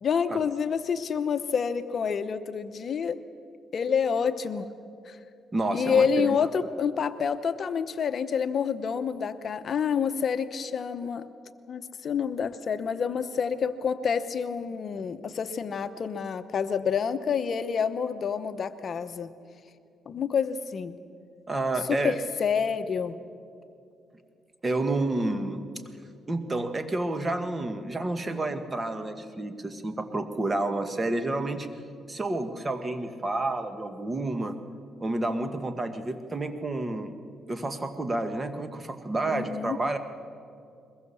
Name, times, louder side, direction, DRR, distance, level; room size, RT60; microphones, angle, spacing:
voice 1, 0.0-3.2 3.7-4.7 5.1-5.2 5.7-11.2 11.7-19.3 20.1-21.0 21.9-23.2 39.2-39.8, left 6 dB, 50° left, 11 dB, 0.9 m, -28 dB
voice 2, 5.5-6.4 21.5-22.2 24.6-25.6 26.3-31.7 32.1-34.6 35.0-37.2 37.5-40.0, right 2 dB, 25° right, 8 dB, 1.7 m, -30 dB
22.0 x 21.0 x 7.1 m, 2.5 s
cardioid pair, 90°, 0 cm